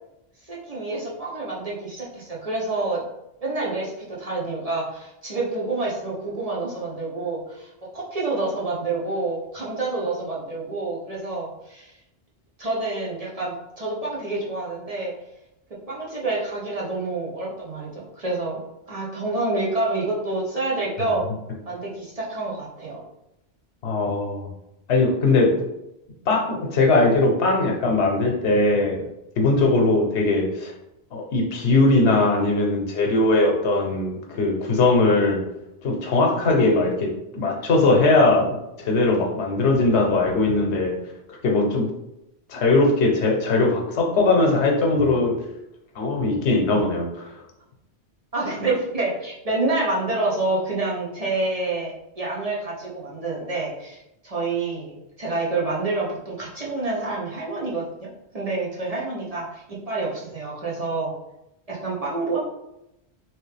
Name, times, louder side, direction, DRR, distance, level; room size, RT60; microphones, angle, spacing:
voice 1, 0.5-3.0 3.4-11.9 12.6-15.1 15.9-18.6 18.9-21.3 21.7-23.0 48.3-54.9 55.2-58.1 58.3-61.1 61.7-62.4, right 2 dB, 40° right, -5 dB, 0.8 m, -28 dB
voice 2, 23.8-24.5 24.9-25.6 26.3-29.1 29.4-30.7 31.1-35.4 35.8-40.9 41.3-41.9 42.5-45.4 45.9-47.3, left 2 dB, 85° left, 1 dB, 1.0 m, -20 dB
3.1 x 3.0 x 3.3 m, 0.89 s
omnidirectional pair, 1.1 m